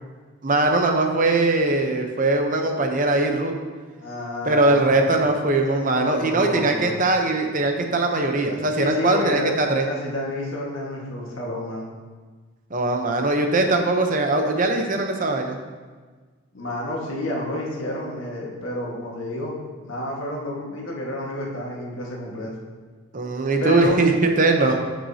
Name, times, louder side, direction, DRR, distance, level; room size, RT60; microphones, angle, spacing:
voice 1, 0.4-3.5 4.4-9.9 12.7-15.6 23.1-24.1 24.4-24.8, right 2 dB, 35° right, 4 dB, 0.8 m, -21 dB
voice 2, 4.0-5.1 5.9-7.0 8.8-9.5 9.8-11.9 16.5-19.5 19.8-22.6 23.6-24.0, left 1 dB, 60° left, -2 dB, 1.6 m, -30 dB
11.0 x 6.2 x 2.8 m, 1.4 s
head